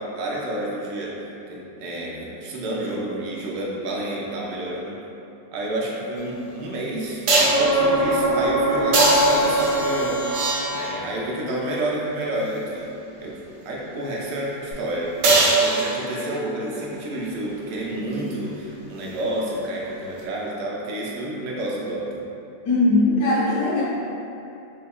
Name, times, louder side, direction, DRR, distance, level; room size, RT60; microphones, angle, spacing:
voice 1, 0.0-5.0 5.5-12.9 13.1-22.1, right 1 dB, 90° right, -4 dB, 1.3 m, -30 dB
sound 1, 6.2-6.3 7.3-7.7 8.9-11.1 15.2-16.3 20.2-20.3, right 2 dB, 70° right, 1.1 m, -21 dB
sound 2, 7.3-11.0 14.7-14.8, right 2 dB, 50° left, 0.7 m, -23 dB
voice 2, 22.6-23.8, left 2 dB, 65° left, -8 dB, 1.3 m, -19 dB
4.0 x 2.9 x 2.3 m, 2.8 s
omnidirectional pair, 1.8 m